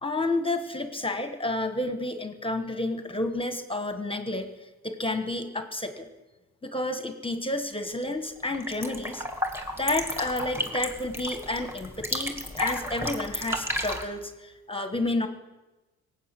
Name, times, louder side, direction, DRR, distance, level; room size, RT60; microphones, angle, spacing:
voice 1, 0.0-4.5 4.8-6.1 6.6-9.2 9.8-15.3, left 2 dB, 15° left, 7 dB, 1.3 m, -30 dB
sound 1, 7.7-8.0 8.4-14.0, equal, 10° right, 2.1 m, -33 dB
18.0 x 8.1 x 8.3 m, 1.1 s
cardioid pair, 90°, 30 cm